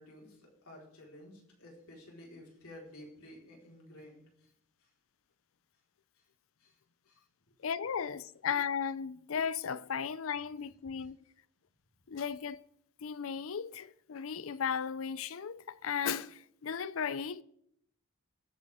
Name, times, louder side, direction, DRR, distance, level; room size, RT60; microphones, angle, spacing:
voice 1, 0.0-4.5 4.8-4.9 6.6-6.8 7.1-7.2, left 1 dB, 85° left, 4.6 m, -53 dB
voice 2, 7.6-11.2 12.1-12.6 13.0-17.4, left 7 dB, 70° left, 0.5 m, -35 dB
22.5 x 8.2 x 3.7 m
head